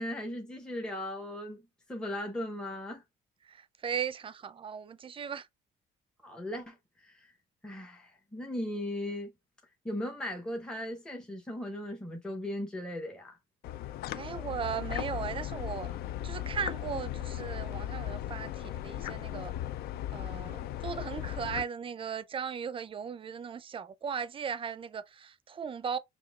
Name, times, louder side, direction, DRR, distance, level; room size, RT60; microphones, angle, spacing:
voice 1, 0.0-3.0 6.2-7.3 7.6-9.3 9.8-13.4, left 1 dB, 5° left, 0.8 m, -38 dB
voice 2, 3.5-5.5 14.1-15.9 16.2-19.5 20.1-26.0, right 7 dB, 30° right, 0.4 m, -37 dB
sound 1, 13.6-21.6, left 12 dB, 70° left, 0.4 m, -37 dB
5.1 x 2.8 x 2.3 m
cardioid pair, 110°, 17 cm